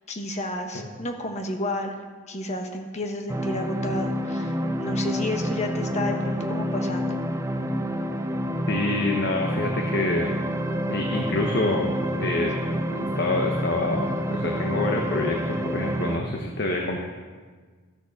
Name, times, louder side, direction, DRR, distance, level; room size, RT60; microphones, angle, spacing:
voice 1, 0.1-2.0 2.3-7.1, left 1 dB, 35° left, 4 dB, 1.2 m, -31 dB
sound 1, 3.3-16.2, equal, 15° right, 0.6 m, -28 dB
voice 2, 8.7-10.3 10.9-17.0, left 2 dB, 55° left, 1 dB, 1.1 m, -27 dB
13.5 x 6.6 x 7.0 m, 1.5 s
head